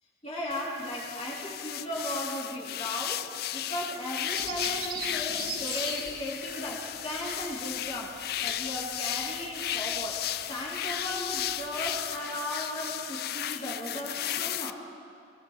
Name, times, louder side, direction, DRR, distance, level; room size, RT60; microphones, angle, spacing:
voice 1, 0.2-10.2 10.5-14.8, equal, 30° left, -5 dB, 2.9 m, -36 dB
sound 1, 0.5-14.7, left 12 dB, 55° left, 0.4 m, -35 dB
Bird vocalization bird call bird song, 4.3-12.1, right 5 dB, 50° right, 2.5 m, -43 dB
23.0 x 18.5 x 3.2 m, 2.4 s
head